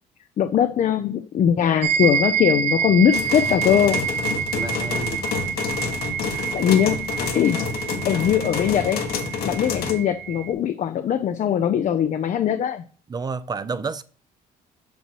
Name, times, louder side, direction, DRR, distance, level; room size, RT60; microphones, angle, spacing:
voice 1, 0.4-4.1 6.5-7.1 7.3-7.7 8.0-9.2 9.4-12.8, left 9 dB, 45° left, 0.5 m, -21 dB
sound 1, 1.8-10.5, right 7 dB, 90° right, 1.0 m, -27 dB
sound 2, 3.1-9.9, left 5 dB, 65° left, 1.3 m, -28 dB
voice 2, 4.5-5.2 6.2-6.5 13.1-14.0, right 4 dB, 25° right, 0.5 m, -31 dB
8.3 x 6.0 x 2.9 m
cardioid pair, 110°, 17 cm